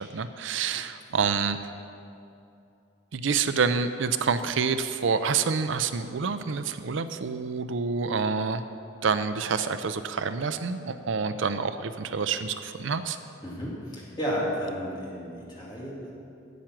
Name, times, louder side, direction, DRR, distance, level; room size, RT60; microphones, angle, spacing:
voice 1, 0.0-1.6 3.1-8.6 9.0-13.2, right 5 dB, 75° right, 11 dB, 0.5 m, -27 dB
voice 2, 13.4-16.1, equal, 20° left, -6 dB, 2.8 m, -32 dB
13.5 x 9.0 x 6.0 m, 2.6 s
head